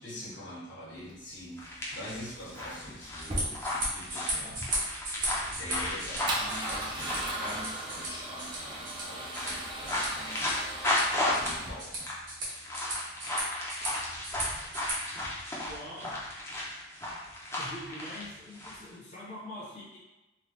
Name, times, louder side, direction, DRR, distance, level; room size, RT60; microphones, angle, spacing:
voice 1, 0.0-4.7 5.6-10.4 11.1-11.9, left 1 dB, 70° left, -7 dB, 1.4 m, -44 dB
Male speech man speaking / Car / Engine starting, 1.0-12.0, right 1 dB, 25° right, 0.5 m, -39 dB
sound 1, 1.6-8.1 8.6-8.9 9.2-18.8, left 1 dB, 15° left, 0.6 m, -34 dB
sound 2, 3.1-14.9, right 1 dB, 55° right, 1.4 m, -37 dB
voice 2, 15.6-16.3 17.5-20.0, left 1 dB, 40° left, -9 dB, 0.9 m, -44 dB
3.2 x 2.3 x 3.1 m, 1.0 s
head